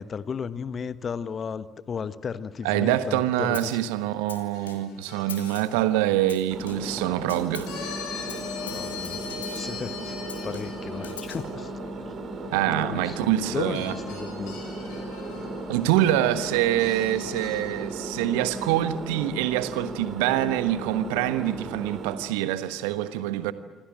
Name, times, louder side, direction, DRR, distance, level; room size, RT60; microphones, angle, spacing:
voice 1, 0.0-3.8 8.7-9.2 9.4-10.2 10.4-11.7 12.6-14.6 21.6-21.8, left 6 dB, 35° left, 1.1 m, -34 dB
voice 2, 2.6-7.7 12.5-13.9 15.7-23.5, right 13 dB, 65° right, 1.2 m, -25 dB
Snare drum, 3.5-3.9 4.3-5.0 5.3-5.8 6.3-7.0 7.3-7.8 8.3-9.8 10.3-11.5, left 8 dB, 80° left, 1.9 m, -42 dB
sound 1, 4.5-5.7 7.7-13.5 13.7-18.2, left 6 dB, 60° left, 6.4 m, -41 dB
Engine, 6.5-22.1, right 2 dB, 45° right, 4.3 m, -36 dB
27.0 x 25.0 x 7.7 m
figure-of-eight pair, 50°, 0 cm